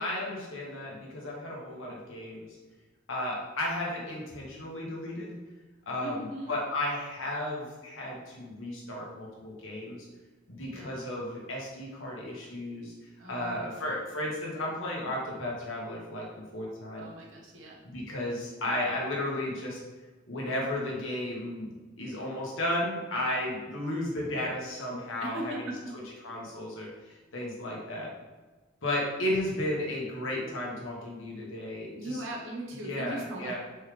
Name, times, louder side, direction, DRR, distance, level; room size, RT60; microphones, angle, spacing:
voice 1, 0.0-2.5 3.1-5.4 5.9-10.1 10.5-12.9 13.3-17.1 17.8-19.8 20.3-21.7 22.0-25.7 26.2-26.9 27.3-28.1 28.8-32.2 32.8-33.6, left 1 dB, 85° left, -3 dB, 1.3 m, -34 dB
voice 2, 6.0-6.5 10.6-11.1 13.2-13.9 17.0-17.8 25.2-25.9 31.9-33.6, right 1 dB, 80° right, -2 dB, 1.1 m, -39 dB
4.5 x 3.5 x 3.3 m, 1.2 s
head